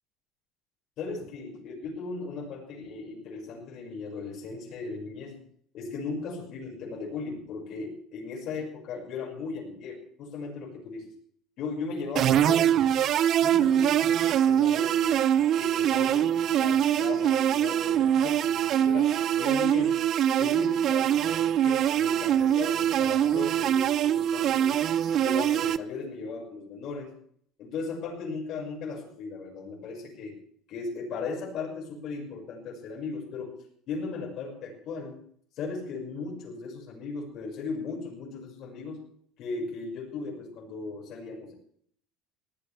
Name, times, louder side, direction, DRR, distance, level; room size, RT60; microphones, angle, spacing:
voice 1, 1.0-5.4 5.7-11.1 11.6-13.1 13.4-15.3 15.6-20.0 20.4-24.8 25.1-27.1 27.6-30.4 30.7-33.6 33.9-35.2 35.5-39.0 39.4-41.5, left 4 dB, 50° left, -2 dB, 5.9 m, -37 dB
sound 1, 12.1-25.8, right 10 dB, 45° right, 0.7 m, -24 dB
20.5 x 16.0 x 3.5 m, 0.62 s
cardioid pair, 130°, 0 cm